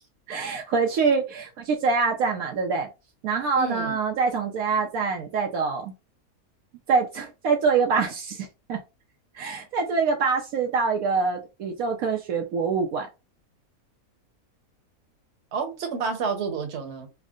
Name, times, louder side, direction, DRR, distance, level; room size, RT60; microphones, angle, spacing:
voice 1, 0.3-2.9 3.2-5.9 6.9-8.8 9.3-13.1, right 5 dB, 75° right, 2 dB, 1.0 m, -25 dB
voice 2, 3.5-4.0 15.5-17.1, right 5 dB, 55° right, 5 dB, 1.1 m, -29 dB
3.5 x 2.1 x 3.6 m, 0.27 s
omnidirectional pair, 1.5 m